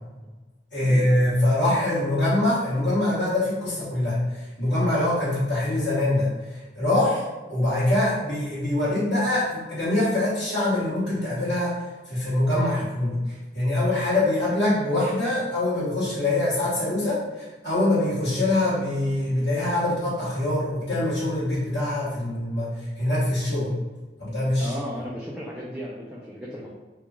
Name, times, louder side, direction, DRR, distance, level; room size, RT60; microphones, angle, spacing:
voice 1, 0.7-11.8 12.1-13.2 13.5-23.8 24.2-24.7, left 1 dB, 80° left, -11 dB, 1.4 m, -24 dB
voice 2, 24.6-26.7, equal, 5° right, -6 dB, 0.4 m, -35 dB
3.0 x 2.3 x 3.5 m, 1.2 s
head